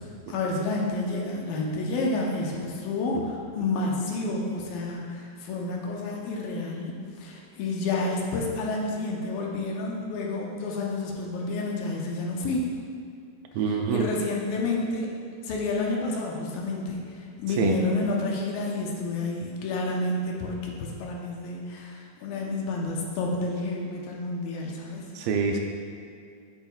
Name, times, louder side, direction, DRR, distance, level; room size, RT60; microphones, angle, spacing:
voice 1, 0.3-12.7 13.7-15.1 15.4-25.1, left 2 dB, 80° left, -1 dB, 2.6 m, -30 dB
voice 2, 13.6-14.1 17.6-17.7 25.2-25.6, right 5 dB, 80° right, 2 dB, 2.3 m, -25 dB
8.9 x 8.9 x 2.4 m, 2.4 s
omnidirectional pair, 4.3 m